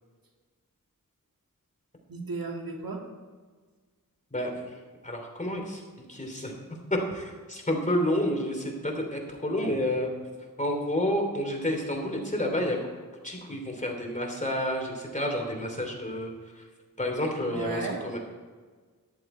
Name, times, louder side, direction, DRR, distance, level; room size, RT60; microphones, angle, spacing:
voice 1, 2.1-3.0 17.5-18.2, right 3 dB, 90° right, 1 dB, 2.1 m, -35 dB
voice 2, 4.3-4.6 5.0-5.8 6.1-6.5 6.9-10.1 10.6-12.8 13.2-16.3 17.0-18.2, left 1 dB, 20° left, 1 dB, 3.3 m, -29 dB
14.0 x 11.0 x 4.5 m, 1.4 s
wide cardioid pair, 65°, 34 cm